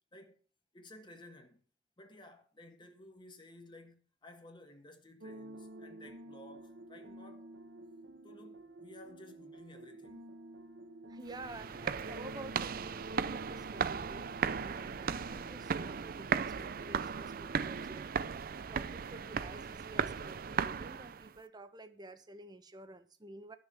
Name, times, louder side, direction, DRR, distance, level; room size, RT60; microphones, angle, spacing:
voice 1, 0.7-1.6 2.0-7.5 8.2-10.3, left 1 dB, 25° left, 1.6 m, -55 dB
sound 1, 5.2-18.0, right 1 dB, 80° right, 1.2 m, -50 dB
voice 2, 11.1-18.1 18.6-23.6, right 2 dB, 25° right, 1.1 m, -50 dB
sound 2, 11.3-21.3, right 6 dB, 55° right, 0.5 m, -36 dB
12.5 x 6.6 x 6.2 m
head